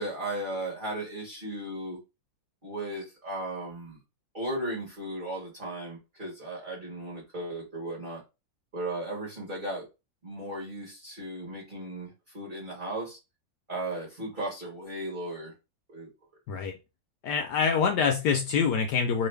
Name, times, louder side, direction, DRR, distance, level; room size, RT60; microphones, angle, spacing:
voice 1, 0.0-2.0 2.6-4.0 4.3-8.2 8.7-9.9 10.2-13.2 13.7-15.5 15.9-16.1, right 1 dB, 35° right, 1.0 m, -36 dB
voice 2, 16.5-16.8 17.2-19.3, left 6 dB, 75° left, 1.0 m, -25 dB
3.0 x 2.5 x 3.2 m
omnidirectional pair, 2.1 m